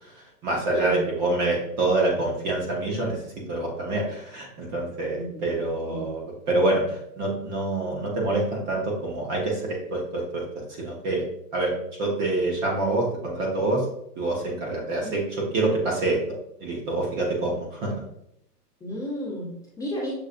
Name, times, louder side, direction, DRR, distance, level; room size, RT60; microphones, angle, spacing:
voice 1, 0.0-10.4 10.8-11.2 11.5-11.7 12.0-13.9 14.2-16.2 16.6-17.9, right 2 dB, 30° right, -2 dB, 0.9 m, -26 dB
voice 2, 0.7-1.1 5.1-5.3 5.9-6.1 15.0-15.2 18.8-20.1, left 1 dB, 5° left, -7 dB, 1.1 m, -32 dB
6.7 x 3.2 x 2.5 m, 0.73 s
hypercardioid pair, 145°, 48 cm